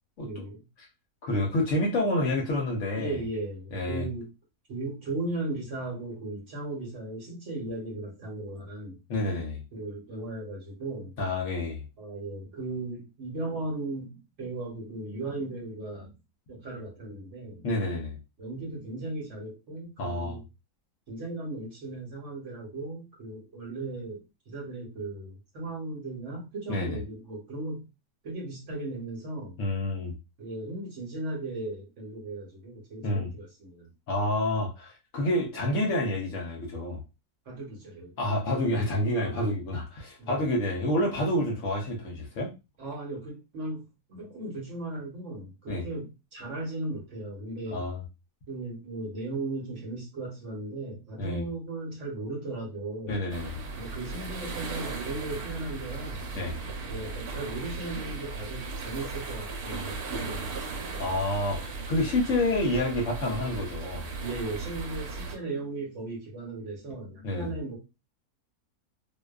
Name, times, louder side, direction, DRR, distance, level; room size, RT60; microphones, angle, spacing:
voice 1, 0.2-0.6 2.9-4.3 4.7-9.0 9.7-11.1 12.0-16.1 16.5-17.6 18.4-20.4 21.1-27.9 28.2-29.6 30.4-33.9 37.5-38.2 39.2-39.5 40.2-40.5 42.8-47.8 48.5-53.2 53.8-56.3 56.9-61.0 64.2-67.8, right 2 dB, 55° right, 1.1 m, -37 dB
voice 2, 1.2-3.2 3.7-4.1 9.1-9.6 11.2-11.8 17.6-18.2 20.0-20.4 26.7-27.0 29.6-30.1 33.0-33.3 34.1-37.0 38.2-42.5 45.7-45.8 47.7-48.0 51.2-51.4 53.1-53.6 56.3-56.6 61.0-64.1 67.2-67.5, left 1 dB, 65° left, 0.9 m, -28 dB
sound 1, 53.3-65.3, right 3 dB, 80° right, 1.2 m, -37 dB
2.6 x 2.2 x 2.2 m
omnidirectional pair, 1.6 m